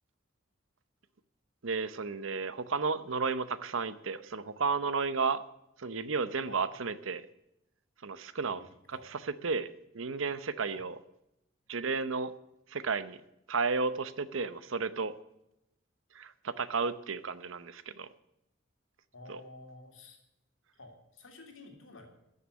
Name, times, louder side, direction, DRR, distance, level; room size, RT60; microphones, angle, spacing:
voice 1, 1.6-5.4 5.8-7.3 8.0-8.6 8.9-10.9 11.7-12.3 12.7-13.2 13.5-15.1 16.1-18.1 19.3-19.4, right 4 dB, 80° right, 14 dB, 0.8 m, -33 dB
voice 2, 8.5-9.1 10.7-10.9 19.1-20.2 20.7-22.1, left 2 dB, 75° left, 3 dB, 3.0 m, -51 dB
14.0 x 6.7 x 8.2 m, 0.84 s
head